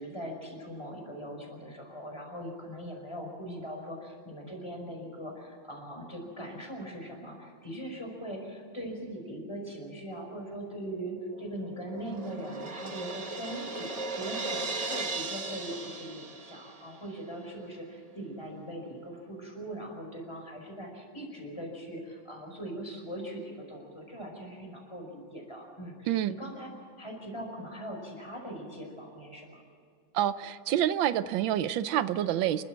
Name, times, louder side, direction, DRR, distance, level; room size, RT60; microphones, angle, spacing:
voice 1, 0.0-26.7 27.0-29.6, right 1 dB, 15° left, 1 dB, 5.2 m, -41 dB
Crash cymbal, 11.3-17.0, right 3 dB, 25° right, 0.9 m, -37 dB
voice 2, 30.1-32.6, right 11 dB, 90° right, 13 dB, 1.5 m, -27 dB
28.0 x 13.0 x 7.5 m, 2.2 s
omnidirectional pair, 2.0 m